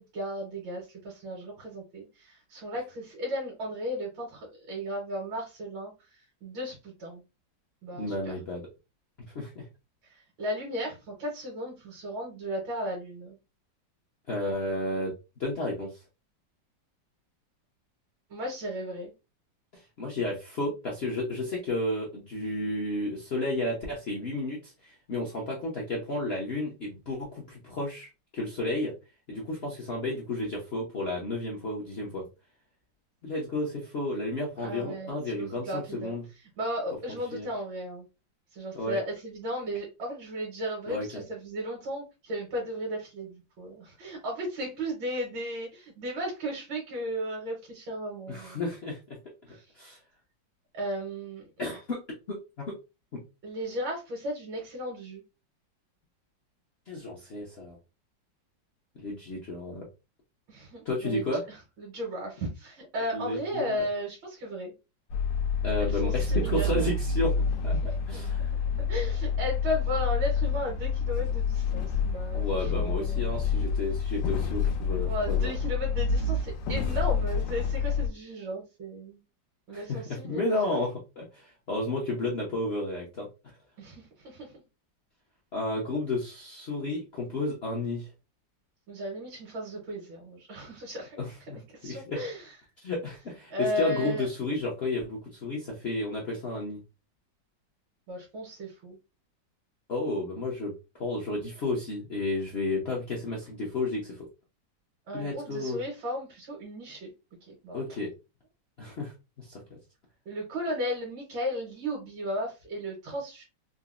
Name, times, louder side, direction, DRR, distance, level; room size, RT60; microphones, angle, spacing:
voice 1, 0.0-7.2 7.8-8.3 10.0-13.4 18.3-19.1 34.6-36.1 36.6-38.1 38.5-48.6 49.5-49.6 50.7-51.5 53.4-55.2 60.5-61.3 61.8-64.7 65.8-66.9 67.7-68.5 68.8-73.4 75.0-79.2 79.7-80.8 83.8-84.5 88.9-91.2 91.7-92.5 93.5-94.3 98.1-99.0 105.1-107.1 107.5-107.8 110.2-113.4, equal, 85° right, -2 dB, 1.7 m, -35 dB
voice 2, 8.0-8.7 9.3-9.6 14.3-15.1 15.4-16.0 19.7-28.9 29.3-32.2 33.2-36.2 37.3-37.5 38.7-39.0 40.9-41.0 48.3-49.2 49.7-50.0 51.6-52.0 52.3-52.4 52.7-52.8 53.1-53.2 56.9-57.8 59.0-59.9 60.8-61.4 63.1-63.8 65.6-67.4 67.6-68.5 72.3-75.5 76.7-76.8 79.7-83.3 85.5-88.1 91.2-91.6 91.8-92.2 92.8-96.8 99.9-100.7 101.0-104.2 105.1-105.8 107.7-108.1 108.8-109.5, left 2 dB, 65° left, -3 dB, 0.6 m, -32 dB
sound 1, 65.1-78.1, left 4 dB, 85° left, 1.4 m, -28 dB
3.9 x 2.0 x 2.4 m, 0.27 s
omnidirectional pair, 2.0 m